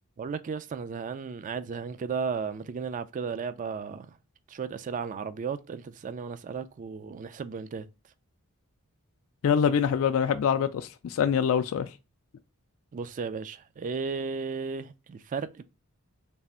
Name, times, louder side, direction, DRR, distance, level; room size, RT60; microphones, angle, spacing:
voice 1, 0.2-4.1 4.5-7.9 12.9-15.6, right 5 dB, 35° right, 0.3 m, -34 dB
voice 2, 9.4-11.9, left 7 dB, 65° left, 0.3 m, -25 dB
3.4 x 2.4 x 4.1 m
head